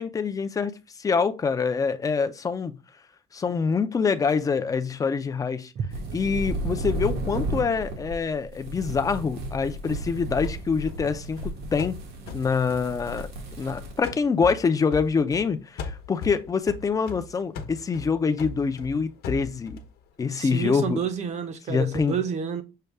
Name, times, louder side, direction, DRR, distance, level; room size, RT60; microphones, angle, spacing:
voice 1, 0.0-2.7 3.3-5.7 6.1-12.0 12.3-13.3 13.6-19.8 20.2-21.0 21.7-22.2, left 5 dB, 20° left, 0.4 m, -25 dB
sound 1, 5.9-14.0, right 2 dB, 75° right, 1.3 m, -33 dB
sound 2, 10.4-13.7 14.0-15.5 15.8-19.9, left 4 dB, 65° left, 0.9 m, -39 dB
voice 2, 20.3-22.6, right 6 dB, 40° right, 0.8 m, -29 dB
6.5 x 2.3 x 3.4 m
cardioid pair, 150°, 17 cm